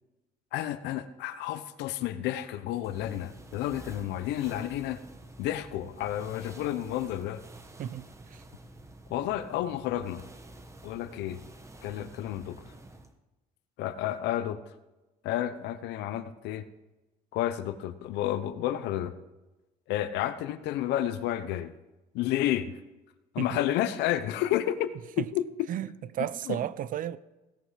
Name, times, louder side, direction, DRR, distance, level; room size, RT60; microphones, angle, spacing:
voice 1, 0.5-5.0 5.4-7.4 9.1-10.2 10.8-11.4 11.8-12.6 13.8-14.6 15.2-16.6 17.3-19.1 19.9-21.7 22.1-22.7 23.3-25.7 26.5-26.6, left 12 dB, 90° left, 0.9 m, -31 dB
sound 1, 2.8-13.1, right 1 dB, 15° right, 1.2 m, -49 dB
voice 2, 7.8-8.4 23.4-23.6 25.2-25.3 25.7-25.9 26.1-27.2, right 11 dB, 55° right, 0.6 m, -33 dB
17.0 x 8.2 x 5.7 m
cardioid pair, 110°, 17 cm